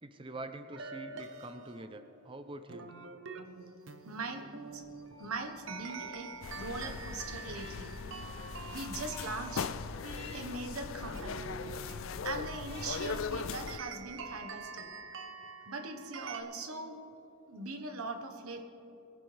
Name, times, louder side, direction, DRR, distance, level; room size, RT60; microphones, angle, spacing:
voice 1, 0.0-2.9, right 2 dB, 25° right, 9 dB, 0.6 m, -45 dB
sound 1, 0.7-16.4, right 4 dB, 60° right, 0.9 m, -47 dB
voice 2, 4.0-4.8 5.2-8.0 8.7-9.7 10.3-11.5 12.2-14.9 15.7-17.0 17.5-18.6, right 3 dB, 85° right, 6 dB, 1.3 m, -41 dB
sound 2, 4.6-14.4, left 3 dB, 25° left, 2.5 m, -55 dB
sound 3, 6.4-13.8, left 5 dB, 65° left, 0.4 m, -40 dB
21.5 x 10.5 x 3.4 m, 2.9 s
head